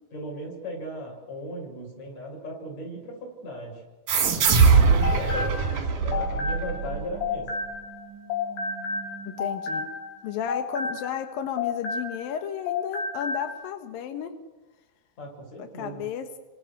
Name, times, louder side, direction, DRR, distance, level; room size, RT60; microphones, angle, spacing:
voice 1, 0.1-3.8 4.6-7.5 15.2-16.0, equal, 30° left, 1 dB, 7.9 m, -37 dB
sound 1, 4.1-7.3, right 5 dB, 45° right, 2.5 m, -21 dB
sound 2, 4.8-8.0 8.3-12.4 12.7-13.5, left 4 dB, 50° left, 5.1 m, -31 dB
sound 3, 5.9-10.4, right 7 dB, 15° right, 1.2 m, -47 dB
voice 2, 9.3-9.9 10.2-14.3 15.6-16.3, left 9 dB, 70° left, 6 dB, 2.2 m, -33 dB
29.0 x 26.0 x 6.7 m, 1.2 s
omnidirectional pair, 6.0 m